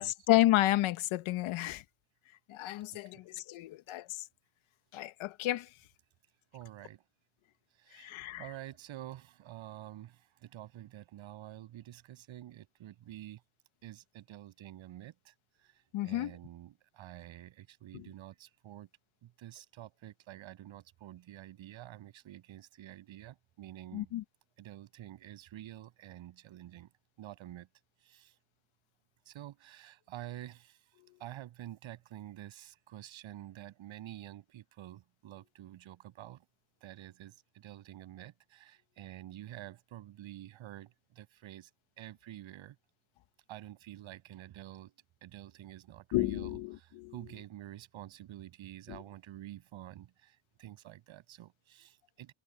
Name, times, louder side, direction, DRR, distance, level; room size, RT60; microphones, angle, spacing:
voice 1, 0.0-1.8 2.5-4.2 4.9-5.7 7.9-8.5 15.9-16.4 17.9-18.1 23.9-24.2 46.1-47.1 48.9-49.0, left 15 dB, 80° left, 1.5 m, -31 dB
voice 2, 6.5-7.0 7.8-13.4 13.8-15.3 16.0-18.9 19.2-24.1 24.6-26.9 27.2-27.7 28.0-28.4 29.3-30.8 31.2-36.4 36.8-41.7 42.0-42.8 43.5-44.9 45.2-52.3, right 13 dB, 75° right, 7.9 m, -48 dB
cardioid pair, 80°, 47 cm